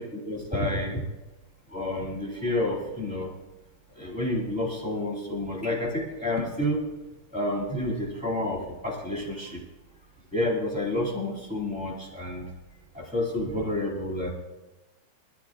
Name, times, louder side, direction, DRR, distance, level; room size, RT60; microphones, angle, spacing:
voice 1, 0.2-1.0 1.7-3.3 4.0-6.8 7.3-9.6 10.3-12.5 12.9-14.3, left 1 dB, 5° right, -4 dB, 1.8 m, -29 dB
20.5 x 13.0 x 2.6 m, 1.1 s
omnidirectional pair, 4.7 m